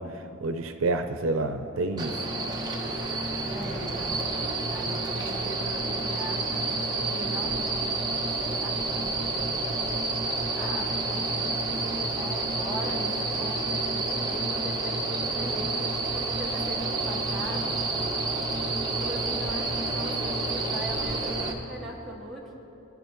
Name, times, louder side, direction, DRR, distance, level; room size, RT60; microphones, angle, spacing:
voice 1, 0.0-2.1, right 2 dB, 75° right, 8 dB, 0.6 m, -29 dB
sound 1, 2.0-21.5, right 2 dB, 20° right, 1.1 m, -29 dB
voice 2, 3.5-4.2 4.7-9.6 10.5-17.7 18.8-22.5, right 1 dB, ahead, -5 dB, 2.3 m, -40 dB
23.5 x 11.5 x 3.2 m, 2.9 s
head